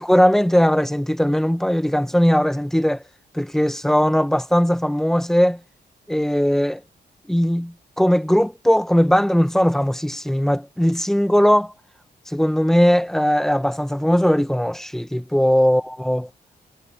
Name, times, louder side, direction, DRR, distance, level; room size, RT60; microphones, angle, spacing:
voice 1, 0.0-3.0 3.3-5.6 6.1-6.8 7.3-11.7 12.3-16.3, equal, ahead, 1.1 m, -19 dB
cardioid pair, 100°, 18 cm